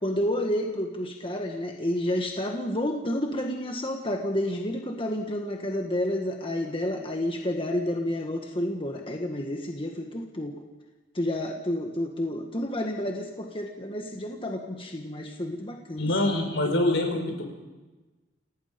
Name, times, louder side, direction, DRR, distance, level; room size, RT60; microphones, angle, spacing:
voice 1, 0.0-10.5 11.1-16.1 16.7-16.8, left 1 dB, 30° left, 2 dB, 1.6 m, -30 dB
voice 2, 16.0-17.4, left 1 dB, 75° left, 3 dB, 5.0 m, -25 dB
28.5 x 17.5 x 5.2 m, 1.2 s
head